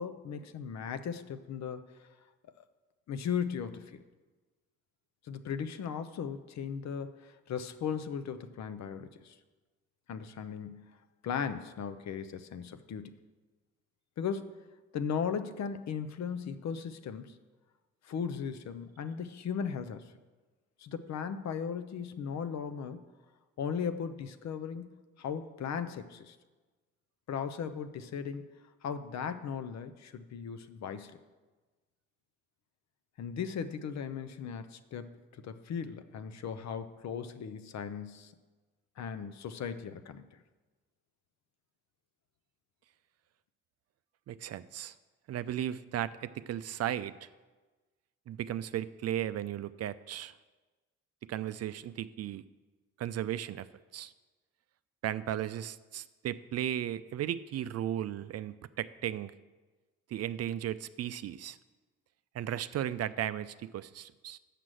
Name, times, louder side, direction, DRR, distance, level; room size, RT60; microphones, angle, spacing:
voice 1, 0.0-1.9 2.6-2.7 3.1-4.0 5.2-9.4 10.1-11.0 11.2-13.2 14.2-14.6 14.9-17.4 18.0-20.1 20.8-23.0 23.6-24.9 25.2-26.4 27.3-28.5 28.8-31.2 33.2-38.3 39.0-40.3, left 7 dB, 60° left, 11 dB, 0.7 m, -37 dB
voice 2, 44.3-44.9 45.3-47.1 48.3-50.3 51.3-52.4 53.0-53.7 53.9-54.1 55.0-59.3 60.1-61.6 62.3-64.4, right 11 dB, 55° right, 14 dB, 0.5 m, -35 dB
6.7 x 6.1 x 7.5 m, 1.3 s
hypercardioid pair, 50°, 31 cm